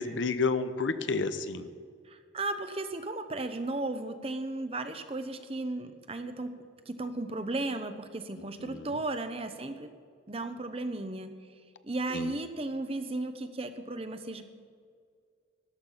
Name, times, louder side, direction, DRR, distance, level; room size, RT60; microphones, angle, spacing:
voice 1, 0.0-1.7 8.6-9.0 12.1-12.3, left 4 dB, 80° left, 12 dB, 0.7 m, -31 dB
voice 2, 2.1-6.5 6.9-9.9 10.3-11.3 11.8-14.4, right 2 dB, 30° right, 9 dB, 0.8 m, -35 dB
13.5 x 11.5 x 5.7 m, 2.1 s
head